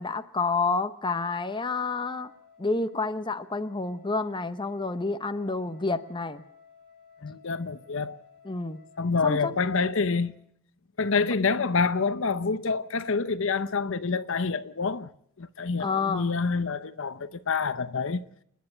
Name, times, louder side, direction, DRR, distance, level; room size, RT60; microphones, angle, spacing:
voice 1, 0.0-2.3 2.6-6.4 8.4-8.8 9.2-9.5 15.8-16.3, left 3 dB, 20° left, 0.9 m, -29 dB
Wind instrument woodwind instrument, 1.0-10.3, left 6 dB, 45° right, 6.5 m, -56 dB
voice 2, 7.2-8.2 9.0-10.3 11.0-15.1 15.4-18.2, left 4 dB, 60° left, 0.8 m, -27 dB
29.0 x 10.5 x 9.8 m
head